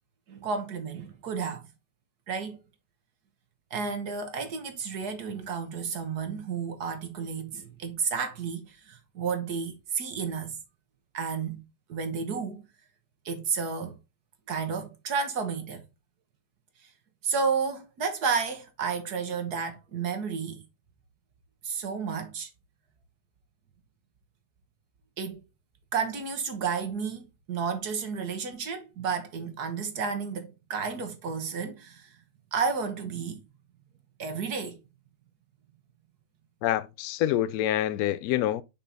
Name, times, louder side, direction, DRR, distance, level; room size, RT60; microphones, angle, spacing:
voice 1, 0.3-1.6 2.3-2.6 3.7-10.5 11.1-12.6 13.2-14.0 14.5-15.8 17.2-20.6 21.6-22.5 25.2-25.4 25.9-32.1 32.5-33.4 34.2-34.8, right 5 dB, 65° right, 1.5 m, -32 dB
voice 2, 36.6-38.6, left 12 dB, 70° left, 0.9 m, -26 dB
5.8 x 4.3 x 4.0 m
omnidirectional pair, 1.9 m